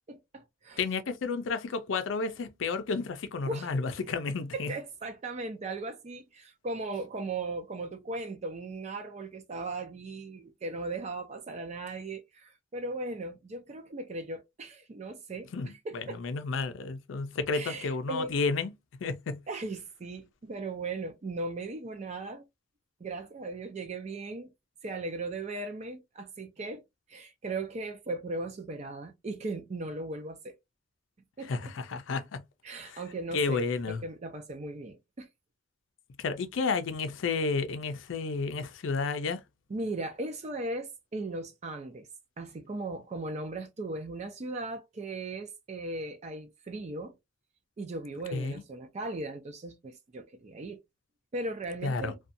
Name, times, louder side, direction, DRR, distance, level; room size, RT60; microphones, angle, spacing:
voice 1, 0.1-0.8 3.4-3.7 4.5-16.2 17.5-18.3 19.5-22.4 23.0-24.5 24.8-26.8 27.1-30.6 31.4-31.7 32.6-35.3 39.7-42.1 42.4-47.2 47.8-50.8 51.3-52.2, right 2 dB, 35° right, 0.4 m, -38 dB
voice 2, 0.8-4.7 15.5-15.7 15.9-18.7 19.0-19.4 31.5-32.4 32.9-33.0 33.3-34.0 36.2-39.4 48.3-48.6 51.8-52.1, left 4 dB, 85° left, 0.4 m, -31 dB
2.6 x 2.3 x 2.5 m
head